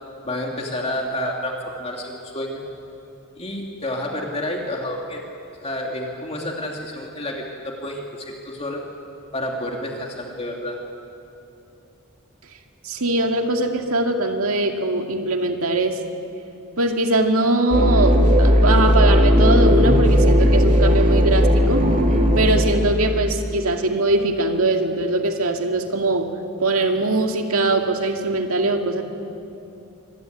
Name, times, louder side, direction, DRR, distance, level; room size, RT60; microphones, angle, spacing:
voice 1, 0.2-2.6 3.4-5.2 5.6-8.8 9.3-10.8, left 1 dB, 30° left, 0 dB, 2.4 m, -29 dB
voice 2, 12.8-16.0 16.8-21.8 22.4-26.3 26.6-29.0, right 2 dB, 70° right, 4 dB, 2.2 m, -21 dB
sound 1, 17.7-22.8, equal, 35° right, 2.8 m, -16 dB
25.0 x 22.0 x 9.3 m, 2.8 s
head